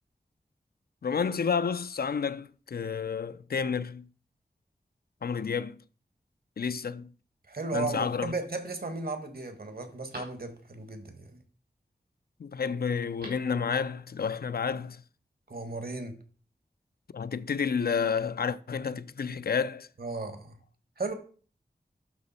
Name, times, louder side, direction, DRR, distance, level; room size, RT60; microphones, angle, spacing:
voice 1, 1.0-4.1 5.2-5.8 6.6-7.1 7.7-8.3 12.4-15.0 17.1-19.9, left 6 dB, 75° left, 0.5 m, -30 dB
voice 2, 7.5-11.4 15.5-16.2 20.0-20.6 21.0-21.1, right 3 dB, 70° right, 1.5 m, -35 dB
Telephone, 9.4-10.9 12.9-13.6 13.9-14.0, right 1 dB, 85° right, 3.7 m, -49 dB
12.0 x 4.2 x 4.2 m
wide cardioid pair, 45°, 16 cm